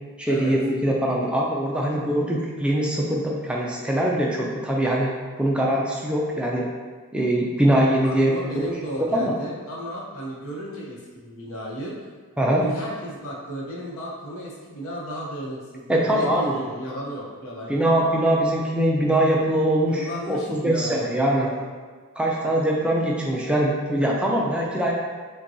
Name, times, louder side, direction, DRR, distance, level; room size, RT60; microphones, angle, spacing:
voice 1, 0.2-5.1 5.4-6.7 7.1-8.7 9.1-9.4 12.4-12.6 15.9-16.6 17.7-21.5 22.2-24.9, right 1 dB, 5° right, -3 dB, 0.3 m, -22 dB
voice 2, 8.0-12.0 12.6-17.8 19.8-21.7 22.4-22.6, right 1 dB, 70° left, -4 dB, 0.9 m, -34 dB
5.3 x 2.2 x 2.7 m, 1.5 s
head